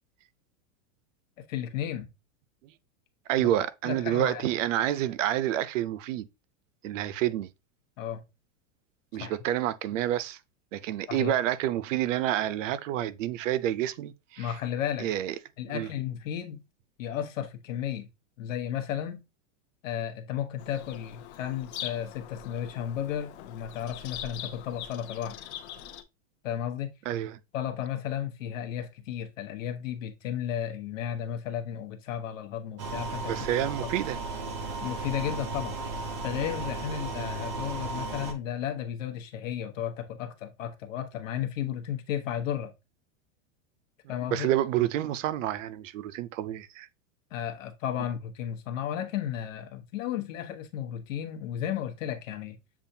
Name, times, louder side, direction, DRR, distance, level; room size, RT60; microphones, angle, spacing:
voice 1, 1.4-2.1 3.4-3.5 3.8-4.5 8.0-8.2 9.1-9.3 11.1-11.3 14.4-15.1 15.6-16.6 17.0-18.1 18.4-19.2 19.8-25.4 26.4-26.9 27.5-33.4 33.8-33.9 34.8-35.8 36.2-42.7 44.1-44.5 47.3-52.6, left 10 dB, 85° left, 1.1 m, -34 dB
voice 2, 3.3-6.3 6.8-7.5 9.1-10.4 10.7-14.6 15.0-15.4 15.7-15.9 27.1-27.4 33.3-34.2 44.3-46.9, right 12 dB, 75° right, 0.5 m, -28 dB
Bird vocalization bird call bird song, 20.6-26.0, left 10 dB, 60° left, 0.6 m, -42 dB
sound 1, 32.8-38.3, right 3 dB, 25° right, 0.4 m, -35 dB
7.0 x 2.4 x 2.7 m
supercardioid pair, 170°, 38 cm